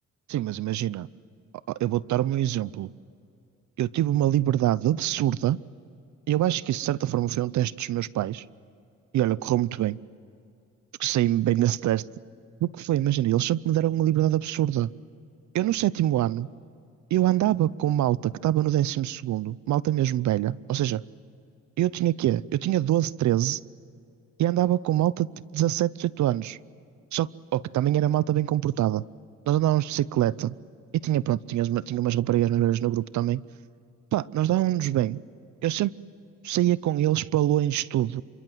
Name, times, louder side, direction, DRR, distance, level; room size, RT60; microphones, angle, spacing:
voice 1, 0.3-1.1 1.7-2.9 3.8-5.6 6.3-8.4 9.1-10.0 11.0-12.0 12.6-14.9 15.5-16.5 17.1-21.0 21.8-23.6 24.4-25.3 25.5-26.6 27.1-29.0 29.5-30.5 31.0-33.4 34.1-35.2 35.6-35.9 36.4-38.2, right 13 dB, 70° right, 20 dB, 0.7 m, -24 dB
27.5 x 25.0 x 7.9 m, 2.6 s
cardioid pair, 90°, 30 cm